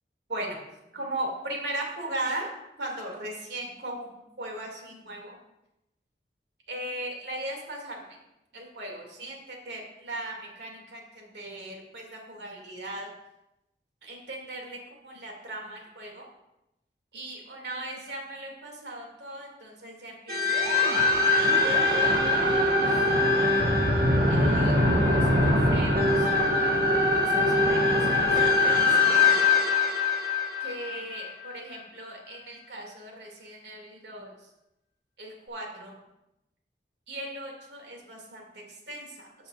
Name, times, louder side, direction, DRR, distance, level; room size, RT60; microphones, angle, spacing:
voice 1, 0.3-0.6 0.9-2.5 2.8-5.4 6.7-8.0 8.5-13.1 14.0-14.8 15.0-16.3 17.1-20.7 21.2-23.1 24.3-29.4 30.6-34.3 35.2-36.0 37.1-39.3, right 1 dB, 85° right, 0 dB, 2.4 m, -38 dB
sound 1, 20.3-31.5, left 2 dB, 55° right, 1.3 m, -22 dB
14.5 x 6.9 x 2.5 m, 0.89 s
head